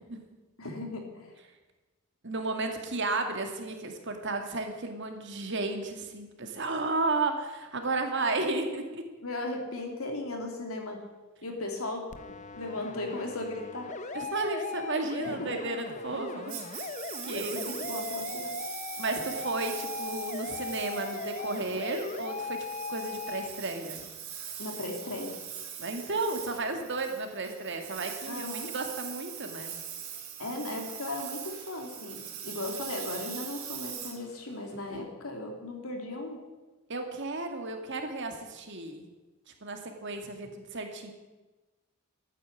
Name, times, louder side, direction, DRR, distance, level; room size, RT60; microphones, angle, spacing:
voice 1, 0.6-1.3 9.2-11.0 11.4-12.1 12.5-14.1 15.2-15.5 17.3-18.5 24.6-25.4 28.3-28.7 30.4-36.4, left 2 dB, 80° left, 3 dB, 3.2 m, -37 dB
voice 2, 2.2-9.0 14.1-16.9 17.2-17.5 19.0-24.1 25.8-29.7 34.9-35.1 36.9-39.1 39.6-41.1, right 3 dB, 55° right, 5 dB, 2.3 m, -33 dB
sound 1, 12.1-23.5, left 4 dB, 35° left, 0.9 m, -38 dB
Engine, 16.5-34.9, right 9 dB, 90° right, 3.4 m, -42 dB
13.5 x 9.8 x 8.9 m, 1.2 s
head